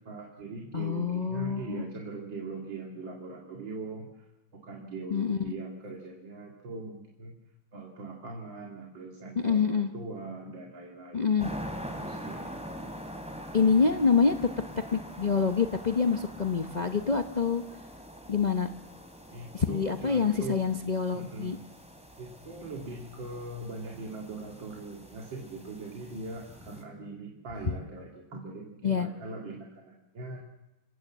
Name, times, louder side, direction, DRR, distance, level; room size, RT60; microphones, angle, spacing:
voice 1, 0.0-4.3 4.5-7.4 7.7-12.5 19.3-20.6 21.1-21.6 22.2-30.4, right 3 dB, 65° right, 0 dB, 3.0 m, -41 dB
voice 2, 0.7-1.8 5.1-5.5 9.4-9.9 11.1-11.5 13.5-14.4 14.9-17.6 18.3-18.7 19.5-21.6 28.8-29.1, left 5 dB, 75° left, 6 dB, 0.4 m, -26 dB
sound 1, 11.4-26.8, equal, 5° right, 2.9 m, -44 dB
27.5 x 16.0 x 7.4 m, 1.0 s
omnidirectional pair, 2.2 m